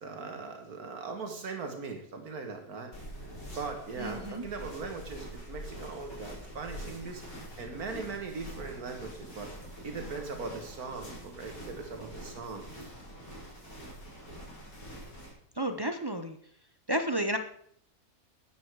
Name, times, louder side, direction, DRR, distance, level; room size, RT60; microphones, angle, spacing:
voice 1, 0.0-2.9 3.6-7.2 7.6-9.5 9.8-12.6, right 4 dB, 75° right, 4 dB, 2.0 m, -39 dB
sound 1, 2.9-15.3, right 1 dB, 65° left, 5.6 m, -45 dB
voice 2, 4.0-4.4 15.6-16.4 16.9-17.4, right 1 dB, 35° right, 7 dB, 0.4 m, -31 dB
12.5 x 9.3 x 4.7 m, 0.65 s
omnidirectional pair, 1.6 m